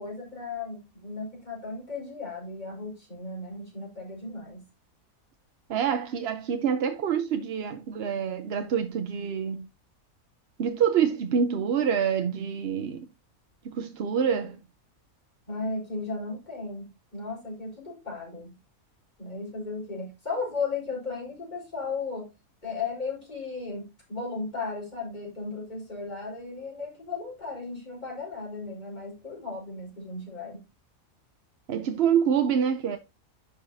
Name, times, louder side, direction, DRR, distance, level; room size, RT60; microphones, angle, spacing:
voice 1, 0.0-4.6 15.5-18.5 19.2-22.3 22.6-30.6, left 4 dB, 30° left, 4.1 m, -35 dB
voice 2, 5.7-9.7 10.6-13.1 13.6-14.6 31.7-33.0, right 7 dB, 55° right, 0.8 m, -26 dB
10.5 x 5.6 x 2.6 m
omnidirectional pair, 1.5 m